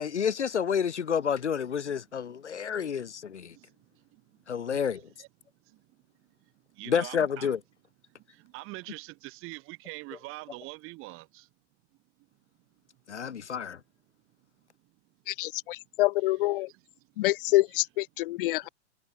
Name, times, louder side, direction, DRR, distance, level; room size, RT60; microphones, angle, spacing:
voice 1, 0.0-3.5 4.5-5.0 6.9-7.6 13.1-13.8, left 7 dB, 75° left, 2.4 m, -29 dB
voice 2, 2.5-2.8 3.5-4.4 4.7-5.3 5.6-7.5 8.1-11.5 13.1-13.2 14.8-14.9 16.7-16.8 18.6-18.7, right 22 dB, 35° right, 6.7 m, -46 dB
voice 3, 15.3-16.7 17.2-18.7, left 18 dB, 50° left, 1.9 m, -26 dB
figure-of-eight pair, 105°, 35 cm